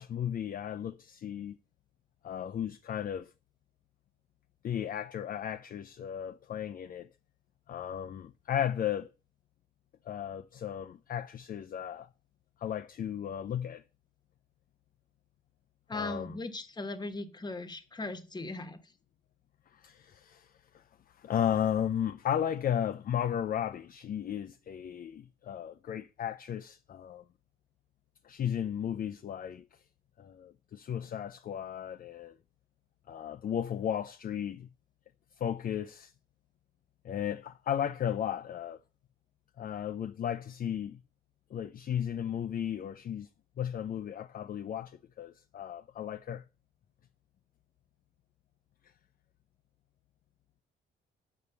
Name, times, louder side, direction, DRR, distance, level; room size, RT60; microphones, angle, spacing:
voice 1, 0.0-1.6 2.2-3.3 4.6-7.1 7.7-9.1 10.1-12.1 12.6-13.8 15.9-16.4 19.7-27.2 28.2-29.7 30.2-32.4 33.1-34.7 35.4-36.1 37.0-38.8 39.6-41.0 41.5-43.3 43.6-46.4, left 9 dB, 45° left, 0.5 m, -35 dB
voice 2, 15.9-18.8, left 2 dB, 20° left, 1.2 m, -38 dB
6.9 x 4.7 x 6.7 m
cardioid pair, 90°, 20 cm